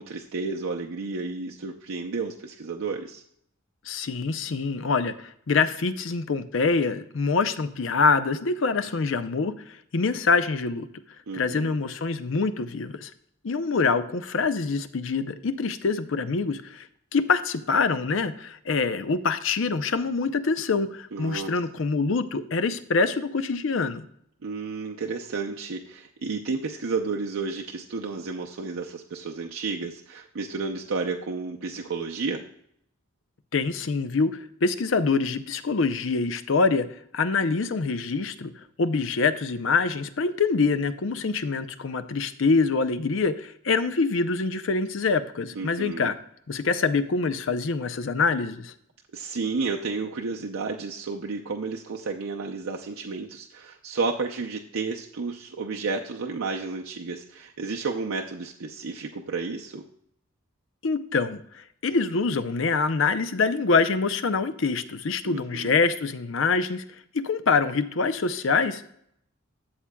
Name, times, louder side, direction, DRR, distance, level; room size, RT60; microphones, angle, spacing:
voice 1, 0.0-3.2 11.3-11.7 21.1-21.6 24.4-32.4 45.6-46.1 49.1-59.9 65.2-65.7, right 4 dB, 85° right, 1 dB, 0.6 m, -32 dB
voice 2, 3.9-10.9 11.3-13.1 13.4-16.9 17.1-24.1 33.5-36.9 37.1-38.5 38.8-46.2 46.5-48.7 60.8-66.8 67.1-68.9, left 4 dB, 65° left, 13 dB, 0.6 m, -25 dB
13.0 x 7.3 x 2.2 m, 0.70 s
head